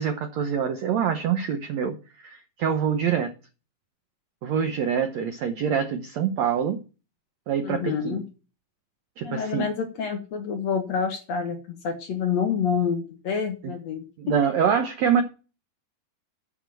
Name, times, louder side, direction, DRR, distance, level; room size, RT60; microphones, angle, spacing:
voice 1, 0.0-3.3 4.4-6.8 7.5-8.2 9.2-9.7 13.6-13.7 14.2-15.2, right 7 dB, 80° right, 7 dB, 1.5 m, -25 dB
voice 2, 7.6-8.2 9.2-14.4, left 6 dB, 60° left, 4 dB, 2.1 m, -28 dB
8.6 x 6.2 x 7.4 m, 0.33 s
omnidirectional pair, 4.4 m